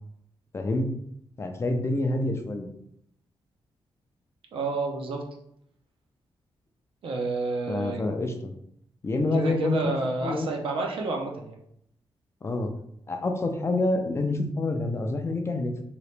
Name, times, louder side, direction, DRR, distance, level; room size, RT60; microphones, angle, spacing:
voice 1, 0.5-0.9 1.4-2.7 7.7-8.5 9.0-9.9 10.2-10.5 12.4-12.7 13.1-15.7, left 2 dB, 30° left, 4 dB, 0.4 m, -27 dB
voice 2, 4.5-5.2 7.0-8.0 9.3-11.6, right 3 dB, 70° right, 1 dB, 0.6 m, -29 dB
2.9 x 2.8 x 3.2 m, 0.73 s
wide cardioid pair, 145°, 9 cm